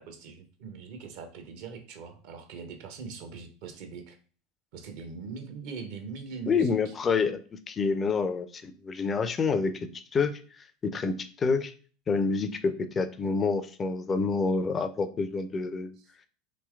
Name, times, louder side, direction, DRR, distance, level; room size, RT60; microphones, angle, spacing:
voice 1, 0.0-4.2 4.7-6.9, right 5 dB, 55° right, 6 dB, 0.5 m, -41 dB
voice 2, 6.5-7.4 7.7-9.7 10.1-10.4 10.8-11.7 12.1-15.9, left 4 dB, 25° left, 11 dB, 0.3 m, -27 dB
3.2 x 2.8 x 2.2 m, 0.40 s
figure-of-eight pair, 75°, 0 cm